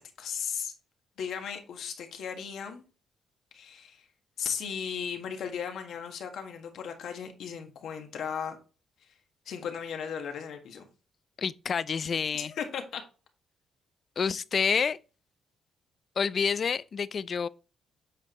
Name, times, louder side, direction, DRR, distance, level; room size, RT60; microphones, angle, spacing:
voice 1, 0.2-0.7 1.2-2.8 3.5-4.0 4.4-8.6 9.4-10.9 12.3-13.0, left 7 dB, 70° left, 1.5 m, -36 dB
voice 2, 11.4-12.5 14.2-15.0 16.2-17.5, left 6 dB, 45° left, 0.4 m, -28 dB
8.4 x 5.1 x 3.2 m
cardioid pair, 90°, 0 cm